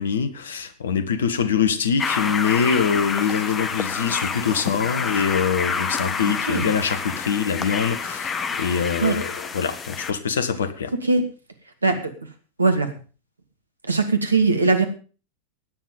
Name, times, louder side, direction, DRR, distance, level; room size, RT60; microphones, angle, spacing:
voice 1, 0.0-10.9, left 6 dB, 65° left, 13 dB, 1.7 m, -24 dB
sound 1, 2.0-10.1, left 5 dB, 20° left, 1.6 m, -28 dB
voice 2, 12.6-12.9 13.9-14.8, right 3 dB, 80° right, 8 dB, 2.4 m, -20 dB
16.5 x 10.0 x 5.4 m, 0.37 s
figure-of-eight pair, 90°, 0 cm